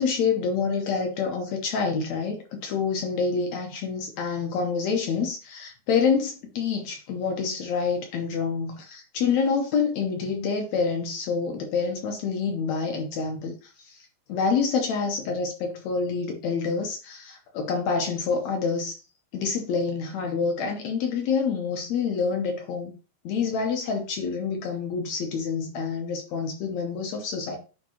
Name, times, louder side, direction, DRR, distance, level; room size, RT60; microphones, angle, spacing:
voice 1, 0.0-19.0 19.3-22.9 23.2-27.6, left 5 dB, 70° left, 2.0 m, -27 dB
10.0 x 4.0 x 2.9 m
omnidirectional pair, 3.7 m